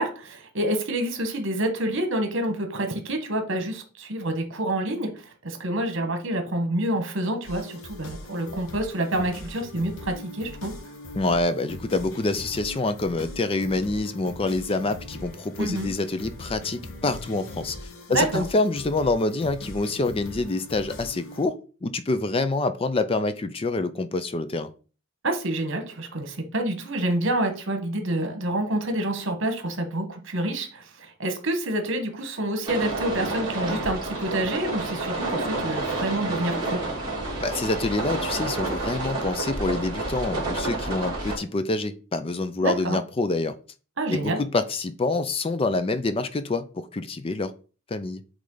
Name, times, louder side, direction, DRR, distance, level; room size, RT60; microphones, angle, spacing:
voice 1, 0.0-10.8 15.6-15.9 18.1-18.4 25.2-36.8 42.6-43.0 44.0-44.4, right 1 dB, 65° right, 5 dB, 1.4 m, -28 dB
sound 1, 7.4-21.5, left 1 dB, 80° left, 1.2 m, -41 dB
voice 2, 11.1-17.8 18.1-24.7 37.4-43.6 44.1-47.5 47.9-48.2, left 2 dB, 25° left, 11 dB, 0.4 m, -26 dB
sound 2, 32.6-41.4, right 2 dB, 20° right, 2.8 m, -29 dB
8.3 x 3.3 x 3.9 m, 0.36 s
head